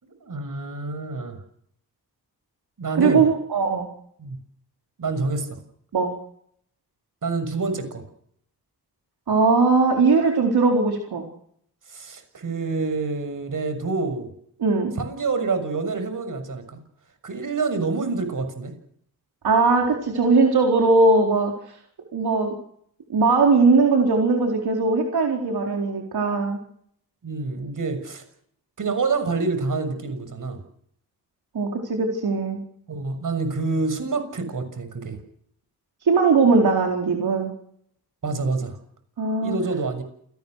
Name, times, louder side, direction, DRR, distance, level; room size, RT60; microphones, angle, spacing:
voice 1, 0.0-1.4 2.8-3.2 4.2-4.4 5.0-5.6 7.2-8.0 11.9-14.3 15.0-16.8 17.2-18.7 27.2-28.2 28.8-30.6 32.9-35.2 38.2-38.8 39.4-40.0, right 3 dB, 55° right, 9 dB, 6.6 m, -27 dB
voice 2, 2.9-3.9 5.9-6.1 9.3-11.3 14.6-14.9 19.4-21.5 22.1-22.5 23.1-26.6 31.5-32.6 36.0-37.5 39.2-39.6, right 4 dB, 80° right, 2 dB, 4.4 m, -19 dB
29.0 x 19.0 x 6.6 m, 0.67 s
wide cardioid pair, 110°, 37 cm